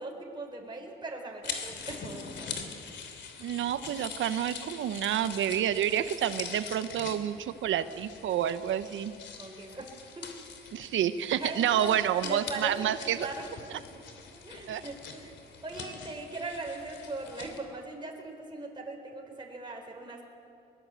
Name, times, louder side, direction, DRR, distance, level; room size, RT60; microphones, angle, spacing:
voice 1, 0.0-2.6 9.4-10.3 11.4-12.0 12.2-13.5 14.3-15.3 15.6-20.3, right 2 dB, 25° right, 0 dB, 4.1 m, -40 dB
sound 1, 1.4-17.6, left 5 dB, 65° left, 3.1 m, -43 dB
voice 2, 3.4-9.1 10.7-13.3 13.7-13.8 14.7-14.8, right 10 dB, 75° right, 12 dB, 1.1 m, -29 dB
21.5 x 21.0 x 8.3 m, 2.6 s
cardioid pair, 90°, 20 cm